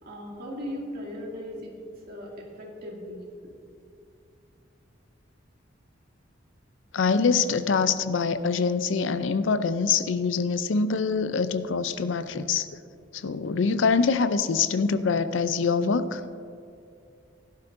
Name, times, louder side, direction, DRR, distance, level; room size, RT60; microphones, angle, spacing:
voice 1, 0.0-1.8 2.1-3.2, equal, 55° right, -3 dB, 2.4 m, -38 dB
voice 2, 6.9-12.7 13.1-16.2, left 5 dB, 80° left, 12 dB, 0.5 m, -24 dB
16.5 x 11.0 x 2.6 m, 2.5 s
head